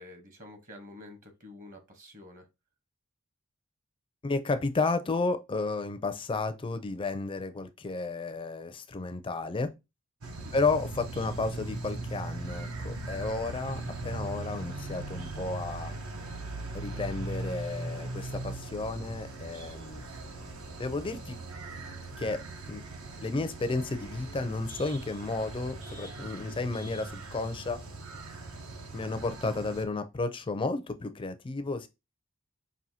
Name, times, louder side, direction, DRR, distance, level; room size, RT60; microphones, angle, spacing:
voice 1, 0.0-2.5 10.4-10.6 26.5-26.7, left 1 dB, 40° right, 0.9 m, -49 dB
voice 2, 4.2-9.7 10.5-15.9 16.7-20.1 20.8-21.4 22.2-22.8 23.2-27.8 28.9-31.9, left 3 dB, 25° left, 0.4 m, -32 dB
sound 1, 10.2-29.8, right 2 dB, 80° right, 0.9 m, -39 dB
5.5 x 2.6 x 2.7 m
head